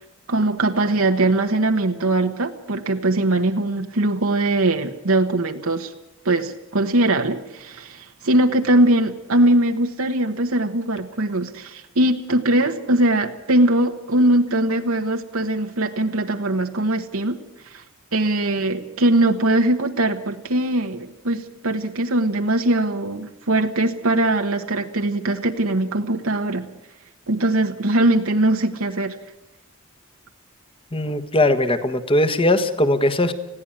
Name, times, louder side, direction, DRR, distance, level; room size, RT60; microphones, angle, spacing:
voice 1, 0.3-5.9 6.2-17.4 17.6-17.8 18.1-26.6 27.3-29.2, right 1 dB, 75° right, 4 dB, 1.3 m, -21 dB
voice 2, 30.9-33.3, left 1 dB, 25° left, 10 dB, 1.4 m, -19 dB
20.5 x 15.5 x 8.9 m, 1.0 s
head